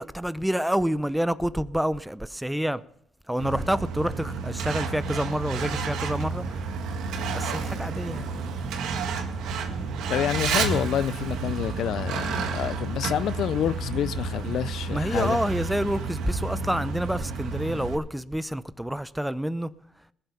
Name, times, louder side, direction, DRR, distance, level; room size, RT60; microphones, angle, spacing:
voice 1, 0.0-2.8 3.3-6.6 7.3-8.3 14.9-19.7, equal, 5° right, 0.6 m, -28 dB
Truck, 3.4-17.9, right 4 dB, 85° right, 1.8 m, -30 dB
voice 2, 10.1-15.4, left 10 dB, 75° left, 0.4 m, -28 dB
20.0 x 7.8 x 5.6 m
cardioid pair, 90°, 0 cm